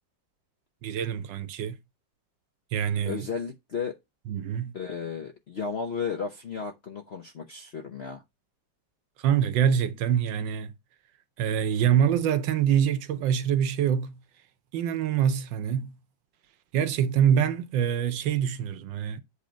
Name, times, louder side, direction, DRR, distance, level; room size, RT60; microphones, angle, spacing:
voice 1, 0.8-1.8 2.7-3.3 4.3-4.7 9.2-10.7 11.4-14.1 14.7-15.9 16.7-19.2, right 9 dB, 80° right, 1.4 m, -25 dB
voice 2, 3.1-4.0 4.7-8.2, left 5 dB, 60° left, 0.6 m, -34 dB
8.4 x 3.0 x 5.0 m
omnidirectional pair, 2.0 m